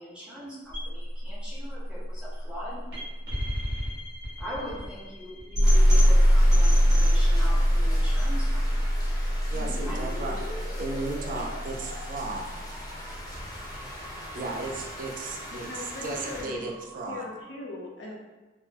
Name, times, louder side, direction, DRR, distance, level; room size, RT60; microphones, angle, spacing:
voice 1, 0.0-2.8 4.4-8.6 9.8-10.0, equal, 5° right, -8 dB, 0.9 m, -41 dB
sound 1, 0.7-12.7, equal, 70° right, 1.4 m, -23 dB
sound 2, 5.6-16.4, left 1 dB, 20° left, 0.7 m, -41 dB
sound 3, 9.5-17.4, left 1 dB, 55° left, 1.0 m, -45 dB
voice 2, 9.5-10.4 10.8-12.5 14.3-17.3, right 3 dB, 50° right, 1 dB, 0.4 m, -35 dB
voice 3, 15.7-16.7 17.1-18.1, left 2 dB, 85° left, -2 dB, 0.6 m, -40 dB
3.5 x 2.0 x 2.8 m, 1.2 s
head